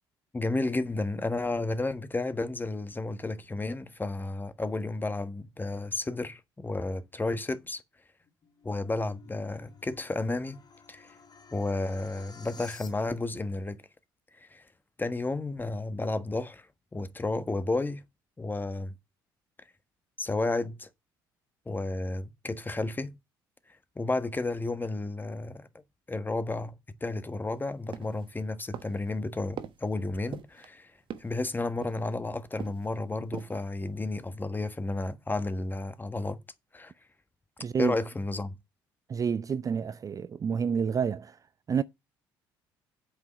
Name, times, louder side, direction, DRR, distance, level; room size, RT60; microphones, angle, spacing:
voice 1, 0.3-7.8 8.6-10.6 10.9-11.2 11.5-13.8 14.4-14.6 15.0-16.7 16.9-18.0 18.4-18.9 20.2-20.9 21.6-23.1 23.9-25.7 26.1-26.7 27.0-30.9 31.2-36.4 36.7-36.9 37.8-38.5, left 2 dB, 20° left, 1.4 m, -32 dB
sound 1, 8.2-13.4, left 5 dB, 45° left, 2.0 m, -53 dB
sound 2, 27.9-28.3 28.7-29.1 29.6-29.9 30.3-30.7 31.1-31.4 31.8-32.2 32.6-32.9 33.2-33.7 34.0-34.1, right 9 dB, 55° right, 1.0 m, -42 dB
voice 2, 37.6-38.0 39.1-41.4 41.7-41.8, right 6 dB, 35° right, 0.4 m, -29 dB
8.2 x 5.1 x 6.7 m
hypercardioid pair, 60°, 10 cm